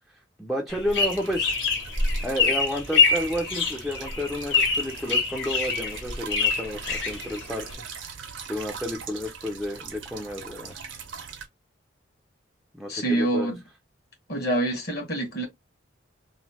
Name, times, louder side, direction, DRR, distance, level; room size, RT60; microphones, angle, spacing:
voice 1, 0.4-1.6 2.2-7.8 8.5-10.7 12.7-13.5, equal, ahead, 0.4 m, -31 dB
sound 1, 0.7-7.7, left 4 dB, 75° left, 1.5 m, -25 dB
sound 2, 0.9-11.5, right 6 dB, 80° right, 0.7 m, -41 dB
voice 2, 12.9-13.6 14.3-15.5, right 1 dB, 55° left, 1.2 m, -26 dB
3.0 x 2.0 x 2.7 m
head